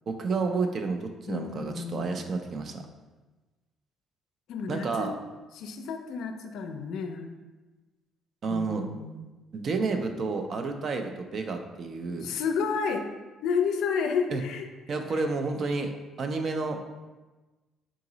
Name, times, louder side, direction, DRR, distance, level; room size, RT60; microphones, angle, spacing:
voice 1, 0.1-2.8 4.7-5.1 8.4-8.9 9.5-12.3 14.3-14.4 14.9-15.9 16.2-16.8, right 4 dB, 40° right, 6 dB, 0.4 m, -30 dB
voice 2, 1.3-2.3 4.5-5.1 5.5-7.3 8.5-9.3 12.2-13.1 13.4-14.7, left 5 dB, 70° left, 6 dB, 0.4 m, -31 dB
3.7 x 2.9 x 3.8 m, 1.2 s
cardioid pair, 155°, 0 cm